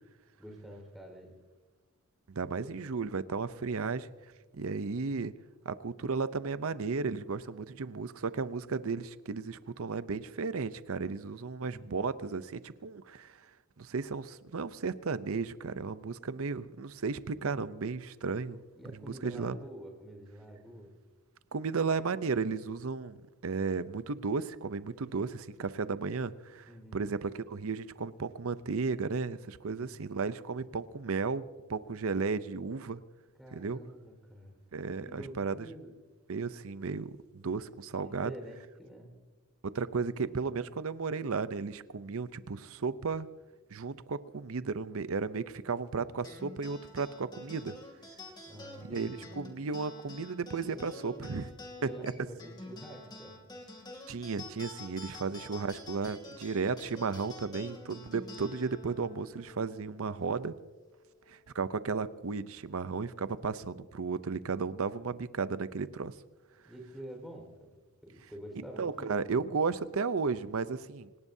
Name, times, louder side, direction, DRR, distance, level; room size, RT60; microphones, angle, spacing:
voice 1, 0.4-1.3 2.6-2.7 11.6-12.1 18.7-20.9 26.5-27.1 33.4-34.6 35.0-35.9 38.0-39.2 48.4-49.3 50.7-51.4 51.8-53.4 55.3-55.7 66.6-67.7 68.0-69.2, right 1 dB, ahead, 2 dB, 4.5 m, -47 dB
voice 2, 2.3-4.1 4.5-5.3 5.6-13.4 13.8-18.6 19.1-19.6 21.5-23.2 23.4-31.4 31.7-33.0 33.5-33.8 34.7-35.6 36.3-38.3 39.6-43.3 43.7-47.7 48.8-51.5 54.1-60.6 61.3-66.1 68.8-71.3, right 4 dB, 65° right, 15 dB, 0.6 m, -34 dB
sound 1, 46.2-61.0, left 2 dB, 20° left, 2.6 m, -49 dB
28.5 x 18.0 x 2.8 m, 1.2 s
head